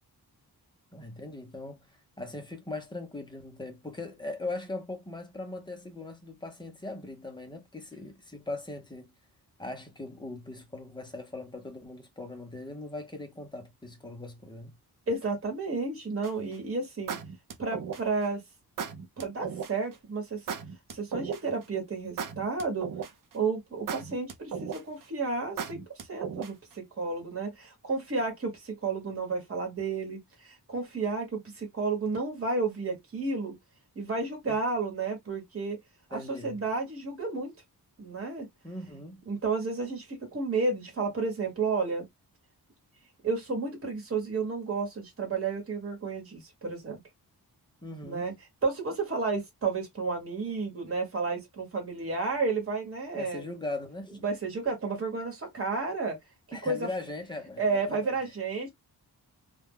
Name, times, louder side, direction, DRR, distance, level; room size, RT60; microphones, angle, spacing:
voice 1, 0.9-1.9 2.2-9.1 9.6-14.7 34.5-34.6 36.1-36.6 38.6-39.3 47.8-48.3 53.1-54.2 56.5-58.1, left 2 dB, 10° left, 0.6 m, -40 dB
voice 2, 15.1-17.2 17.6-18.4 19.2-20.4 20.9-22.9 23.3-25.8 26.1-33.6 33.9-35.8 36.1-37.5 38.0-38.5 39.3-42.1 43.2-47.0 48.0-48.3 48.6-53.5 54.2-56.2 56.5-56.9 57.6-58.7, right 4 dB, 35° right, 1.1 m, -31 dB
sound 1, 16.2-16.5 17.1-18.2 18.8-19.7 20.5-21.6 22.2-23.3 23.9-25.0 25.6-26.7, right 7 dB, 55° right, 0.5 m, -36 dB
2.2 x 2.2 x 3.4 m
wide cardioid pair, 180°, 38 cm